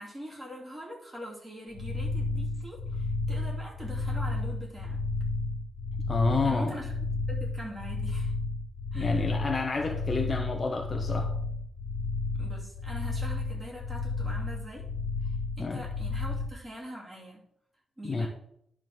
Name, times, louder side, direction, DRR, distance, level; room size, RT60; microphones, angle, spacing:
voice 1, 0.0-5.0 6.4-6.9 7.3-8.3 8.9-9.3 12.3-14.9 15.2-17.4 18.0-18.3, equal, 15° right, -4 dB, 2.7 m, -43 dB
sound 1, 1.7-16.5, left 3 dB, 50° left, 1.3 m, -32 dB
voice 2, 6.1-6.8 8.9-11.3 15.6-15.8 18.1-18.3, left 3 dB, 30° left, 3 dB, 0.8 m, -29 dB
10.5 x 3.7 x 6.3 m, 0.72 s
wide cardioid pair, 155°, 0 cm